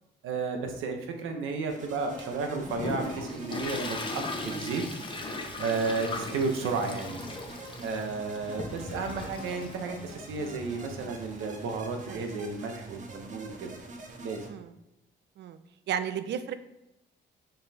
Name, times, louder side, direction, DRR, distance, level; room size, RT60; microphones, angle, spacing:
voice 1, 0.2-4.8 5.6-7.2 7.8-13.7 14.2-14.4, right 4 dB, 85° right, 4 dB, 0.7 m, -33 dB
sound 1, 1.7-14.5, right 2 dB, 40° right, 0.8 m, -45 dB
Toilet flush, 2.2-12.4, left 2 dB, 25° left, 0.6 m, -39 dB
voice 2, 15.9-16.5, right 8 dB, 60° right, 11 dB, 0.4 m, -33 dB
5.4 x 2.2 x 4.1 m, 0.93 s
cardioid pair, 90°, 20 cm